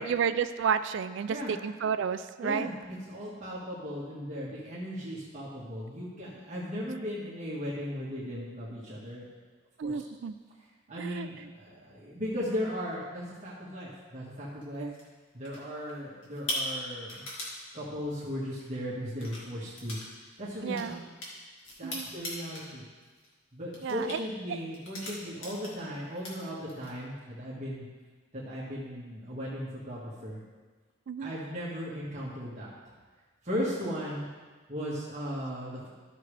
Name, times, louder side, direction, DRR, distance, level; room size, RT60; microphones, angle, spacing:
voice 1, 0.0-1.4 1.6-2.7 9.8-10.3 11.0-11.3 14.8-14.9 20.6-21.0 21.8-22.1 23.8-24.2 31.1-31.3, right 7 dB, 60° right, 12 dB, 0.3 m, -31 dB
voice 2, 2.4-9.2 9.8-10.1 10.9-14.9 15.3-17.2 17.7-20.9 21.8-22.8 23.5-27.8 28.3-30.4 31.2-32.9 33.4-34.3 34.7-35.9, equal, 35° right, -8 dB, 1.5 m, -37 dB
sound 1, 14.6-15.1 15.5-15.9 16.2-17.6 18.5-18.7 19.1-19.4 19.8-20.1 20.3-22.7 23.0-23.3 23.7-24.2 24.7-25.9 26.1-26.9, left 1 dB, 70° left, 2.1 m, -39 dB
13.0 x 6.2 x 3.3 m, 1.4 s
head